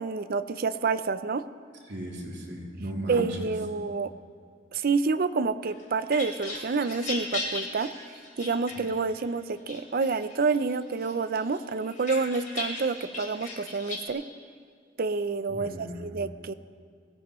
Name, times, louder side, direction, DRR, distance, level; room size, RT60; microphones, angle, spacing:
voice 1, 0.0-1.4 3.1-4.1 4.7-7.9 8.4-14.2 15.0-16.5, right 4 dB, 55° right, 12 dB, 0.5 m, -28 dB
voice 2, 1.9-3.5 8.7-8.8 15.5-16.0, equal, 70° right, -3 dB, 3.0 m, -36 dB
sound 1, 5.7-9.2 9.7-10.6 11.0-14.1, left 2 dB, 45° left, 2.9 m, -37 dB
21.5 x 16.5 x 3.1 m, 2.3 s
head